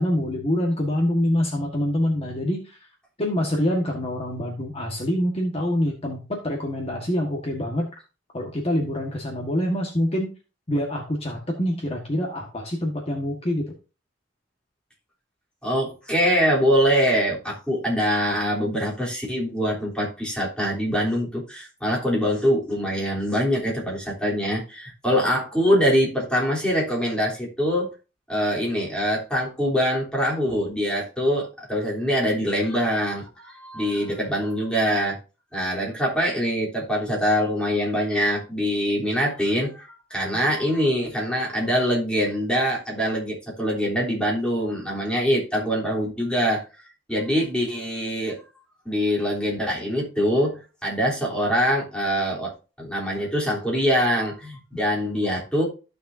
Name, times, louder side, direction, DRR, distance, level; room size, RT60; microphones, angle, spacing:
voice 1, 0.0-2.8 3.2-7.9 8.3-10.3 10.7-13.7, left 1 dB, 35° left, 0 dB, 1.6 m, -25 dB
voice 2, 15.6-27.9 28.3-35.2 35.5-46.6 47.1-48.4 48.9-52.5 52.8-55.7, equal, 5° left, -4 dB, 3.5 m, -24 dB
14.5 x 6.7 x 2.7 m, 0.32 s
head